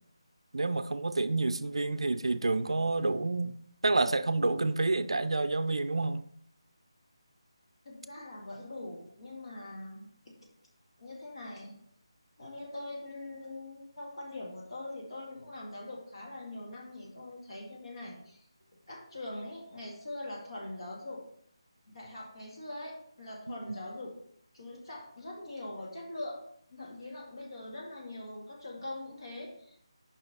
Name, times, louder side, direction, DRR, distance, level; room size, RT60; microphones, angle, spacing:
voice 1, 0.5-3.5 3.8-6.2 23.5-23.6, right 3 dB, 70° right, 0.4 m, -29 dB
voice 2, 7.9-10.5 11.0-11.8 12.4-18.4 18.9-21.2 21.9-24.2 24.5-26.4 26.7-29.8, left 2 dB, 60° left, 2.0 m, -43 dB
6.8 x 5.4 x 4.1 m
figure-of-eight pair, 160°, 3 cm